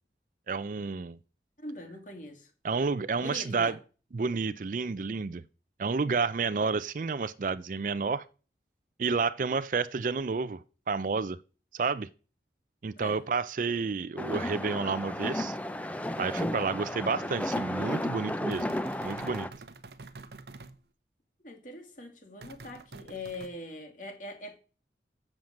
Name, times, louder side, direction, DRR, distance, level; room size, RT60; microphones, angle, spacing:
voice 1, 0.5-1.2 2.6-3.8 4.1-5.4 5.8-8.2 9.0-11.4 11.7-12.1 12.8-15.5 16.2-18.7 19.0-19.5, right 4 dB, 45° right, 0.4 m, -30 dB
voice 2, 1.6-2.5 3.2-3.8 13.0-13.2 21.4-24.6, left 1 dB, 45° left, 2.3 m, -42 dB
sound 1, 14.2-19.5, left 1 dB, 10° left, 0.5 m, -33 dB
sound 2, 18.5-20.7 22.4-23.5, right 3 dB, 70° right, 0.8 m, -47 dB
7.5 x 7.2 x 6.4 m
head